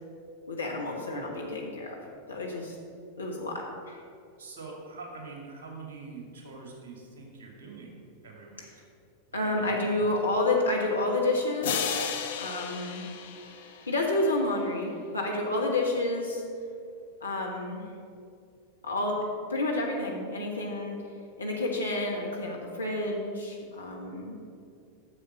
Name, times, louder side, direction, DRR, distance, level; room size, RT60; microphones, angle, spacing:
voice 1, 0.5-2.0 2.3-2.8 3.2-4.0 9.3-12.1 12.3-13.0 13.9-16.4 17.2-17.8 18.8-19.2 19.5-21.0 21.4-24.3, left 2 dB, 75° left, -1 dB, 1.2 m, -29 dB
voice 2, 4.4-8.0 8.2-8.7 9.4-10.1, right 4 dB, 55° right, 0 dB, 2.5 m, -44 dB
sound 1, 11.6-14.3, left 7 dB, 60° left, 0.8 m, -34 dB
9.8 x 7.0 x 5.3 m, 2.4 s
figure-of-eight pair, 90°, 0 cm